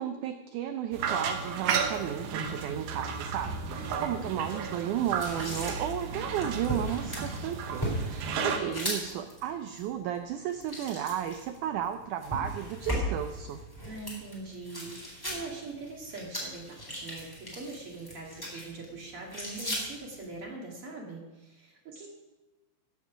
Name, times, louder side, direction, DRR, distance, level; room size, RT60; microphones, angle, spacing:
voice 1, 0.0-13.6, right 10 dB, 90° right, 8 dB, 1.7 m, -34 dB
sound 1, 0.9-8.6, right 6 dB, 70° right, 2.6 m, -33 dB
sound 2, 1.3-20.4, equal, 5° left, 3.4 m, -39 dB
voice 2, 3.9-4.3 8.5-8.7 13.8-22.1, right 3 dB, 45° right, -1 dB, 2.6 m, -42 dB
15.5 x 7.3 x 6.1 m, 1.1 s
omnidirectional pair, 4.3 m